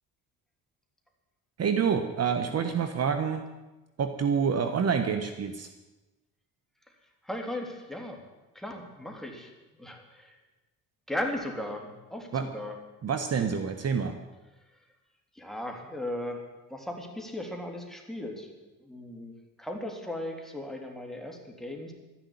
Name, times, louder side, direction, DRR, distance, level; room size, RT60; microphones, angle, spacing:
voice 1, 1.6-3.4 4.0-5.7 12.3-12.5 13.0-14.2, right 6 dB, 45° right, 8 dB, 1.3 m, -27 dB
voice 2, 7.2-8.2 8.5-10.4 11.1-12.8 14.7-14.8 15.3-18.5 18.8-21.9, left 1 dB, ahead, 1 dB, 3.4 m, -37 dB
13.0 x 10.5 x 10.0 m, 1.1 s
cardioid pair, 90°, 35 cm